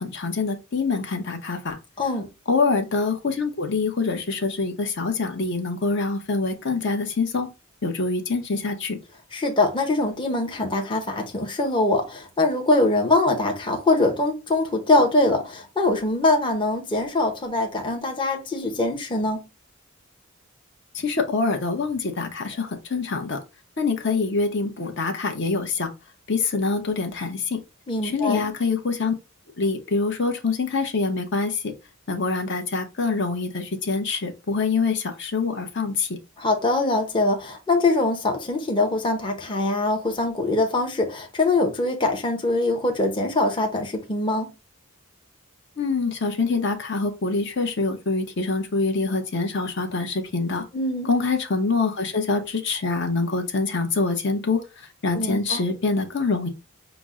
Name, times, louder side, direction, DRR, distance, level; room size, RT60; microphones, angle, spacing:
voice 1, 0.0-1.8 2.5-7.5 7.8-9.0 20.9-23.4 23.8-25.9 26.3-27.6 28.0-29.1 29.6-31.7 32.1-36.2 45.8-50.7 51.0-56.5, left 4 dB, 55° left, 0.8 m, -25 dB
voice 2, 2.0-2.3 9.3-19.5 27.9-28.5 36.4-44.5 50.7-51.1 55.1-55.6, left 2 dB, 25° left, 0.7 m, -23 dB
5.9 x 2.1 x 3.6 m
head